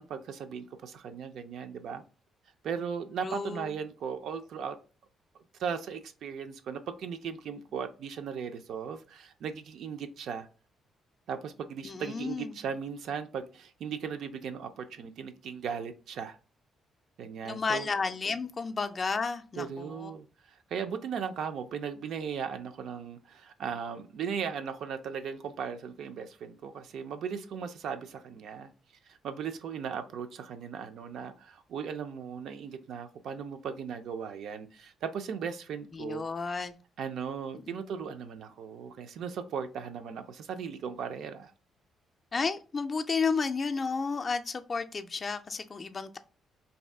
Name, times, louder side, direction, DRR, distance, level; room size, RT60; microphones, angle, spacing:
voice 1, 0.0-2.0 2.6-4.8 5.6-10.5 11.3-16.4 17.2-17.9 19.6-20.3 20.7-28.7 29.1-36.2 37.0-41.5, right 7 dB, 75° right, 0.3 m, -37 dB
voice 2, 3.2-3.7 11.8-12.5 17.4-20.1 35.9-36.7 37.6-37.8 42.3-46.2, left 4 dB, 35° left, 0.3 m, -32 dB
2.6 x 2.3 x 3.3 m
cardioid pair, 90°, 0 cm